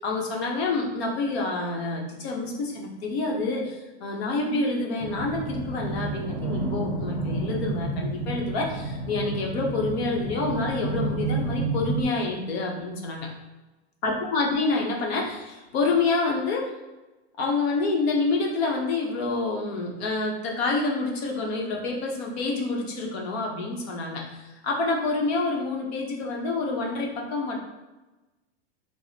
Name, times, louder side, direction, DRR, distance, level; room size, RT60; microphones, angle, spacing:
voice 1, 0.0-13.3 14.0-16.7 17.4-27.6, left 3 dB, 60° left, 0 dB, 0.9 m, -27 dB
sound 1, 5.0-12.0, right 3 dB, 20° right, 0.4 m, -30 dB
4.6 x 2.1 x 2.8 m, 1.1 s
supercardioid pair, 160°, 35 cm